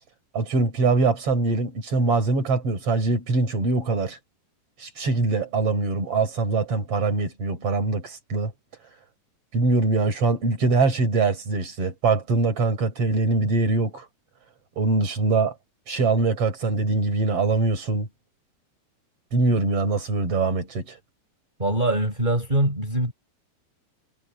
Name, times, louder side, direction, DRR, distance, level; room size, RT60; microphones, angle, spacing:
voice 1, 0.3-4.2 4.8-8.5 9.5-14.1 14.8-15.5 15.9-18.1 19.3-21.0, right 3 dB, 35° right, 5.9 m, -23 dB
voice 2, 21.6-23.1, right 1 dB, 10° right, 6.0 m, -23 dB
omnidirectional pair, 4.8 m